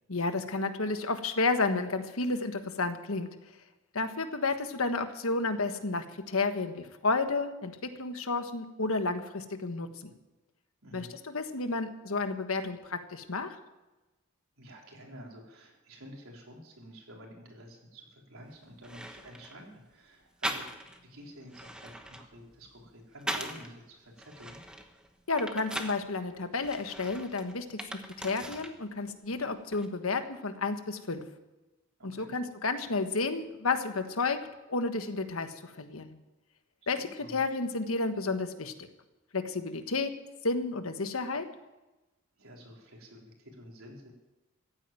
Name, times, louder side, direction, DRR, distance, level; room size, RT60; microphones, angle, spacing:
voice 1, 0.1-3.3 3.9-10.1 10.9-13.6 25.3-31.2 32.0-34.4 34.7-36.1 36.9-38.9 39.3-40.1 40.4-41.5, left 3 dB, 75° left, 8 dB, 1.4 m, -31 dB
voice 2, 10.8-11.1 14.6-24.6 32.0-32.3 36.8-37.4 42.4-44.1, equal, 75° right, -1 dB, 3.9 m, -50 dB
sound 1, 18.4-18.5 18.8-19.6 20.4-21.0 21.4-23.7 24.2-26.0 26.6-28.8 29.1-29.9, right 1 dB, 5° right, 1.1 m, -40 dB
15.0 x 9.0 x 9.0 m, 1.1 s
head